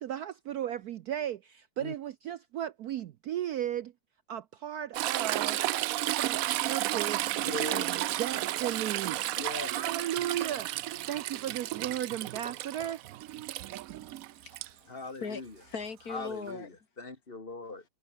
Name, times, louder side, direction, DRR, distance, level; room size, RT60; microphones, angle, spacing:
voice 1, 0.0-3.9 4.3-5.6 6.2-7.2 7.7-9.2 9.6-10.7 11.1-13.0, right 11 dB, 65° right, 1.0 m, -35 dB
Toilet flush / Trickle dribble, 4.9-14.7 16.5-16.6, right 14 dB, 90° right, 0.7 m, -32 dB
voice 2, 7.4-7.9 9.3-9.7 14.9-15.6 16.1-17.8, left 3 dB, 30° left, 2.6 m, -40 dB
voice 3, 14.0-16.7, left 5 dB, 50° left, 2.5 m, -41 dB
omnidirectional pair, 2.1 m